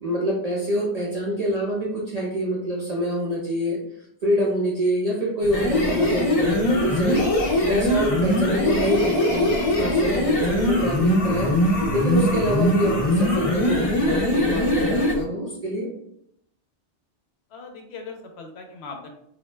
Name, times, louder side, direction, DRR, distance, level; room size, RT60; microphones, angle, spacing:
voice 1, 0.0-3.8 4.2-7.3 7.7-9.5 9.8-11.6 11.9-15.9, equal, 55° right, -3 dB, 0.4 m, -26 dB
sound 1, 5.4-15.2, left 1 dB, 40° left, 0.5 m, -21 dB
voice 2, 17.5-19.1, left 4 dB, 70° left, 3 dB, 0.8 m, -40 dB
2.6 x 2.1 x 3.1 m, 0.73 s
omnidirectional pair, 1.2 m